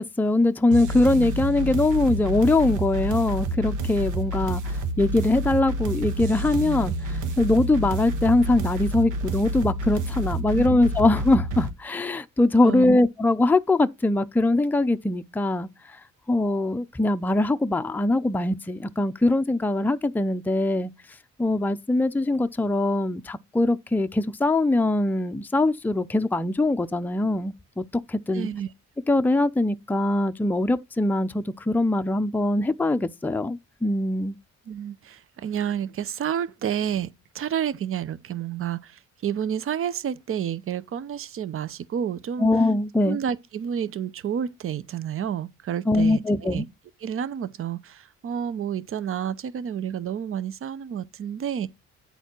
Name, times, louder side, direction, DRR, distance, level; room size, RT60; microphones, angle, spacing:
voice 1, 0.0-15.7 16.3-20.9 21.4-28.5 29.1-34.4 42.4-43.2 45.9-46.6, left 2 dB, 5° left, 0.5 m, -22 dB
sound 1, 0.7-11.7, right 2 dB, 85° right, 1.4 m, -29 dB
voice 2, 12.6-13.0 28.3-28.7 34.7-42.5 43.0-46.7 47.0-51.7, right 9 dB, 45° right, 0.7 m, -30 dB
9.3 x 4.2 x 4.4 m
cardioid pair, 90°, 30 cm